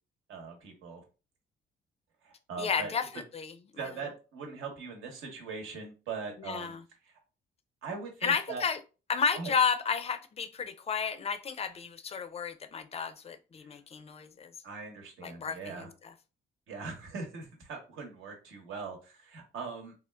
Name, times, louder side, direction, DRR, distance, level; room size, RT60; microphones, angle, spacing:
voice 1, 0.3-1.0 2.2-3.0 3.8-6.7 7.0-7.2 7.8-8.6 9.3-9.5 13.6-13.8 14.6-15.9 16.7-19.9, right 4 dB, 80° right, 3 dB, 1.0 m, -41 dB
voice 2, 2.6-3.1 3.3-3.5 3.8-3.9 6.4-6.8 8.2-8.8 9.1-14.5 15.2-15.9, left 6 dB, 30° left, 10 dB, 0.4 m, -32 dB
3.6 x 2.3 x 2.2 m, 0.33 s
cardioid pair, 90°, 20 cm